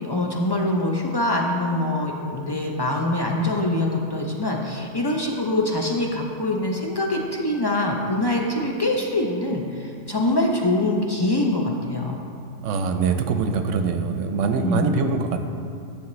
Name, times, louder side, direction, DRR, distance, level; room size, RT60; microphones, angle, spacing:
voice 1, 0.0-12.2 14.5-14.9, left 1 dB, 40° left, 0 dB, 0.3 m, -24 dB
voice 2, 12.6-15.4, right 5 dB, 75° right, 7 dB, 0.9 m, -23 dB
9.7 x 7.0 x 3.1 m, 2.4 s
omnidirectional pair, 1.3 m